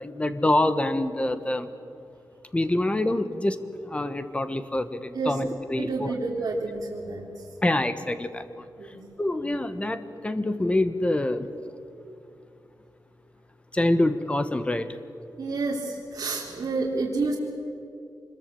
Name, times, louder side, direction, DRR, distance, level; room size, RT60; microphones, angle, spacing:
voice 1, 0.0-1.7 2.5-3.6 3.8-6.1 7.6-8.7 9.2-11.5 13.7-15.0, left 1 dB, 15° left, 11 dB, 1.3 m, -26 dB
voice 2, 5.8-7.2 8.8-9.0 15.4-17.4, right 3 dB, 50° right, -4 dB, 3.4 m, -29 dB
25.5 x 21.5 x 8.3 m, 2.6 s
wide cardioid pair, 145°, 7 cm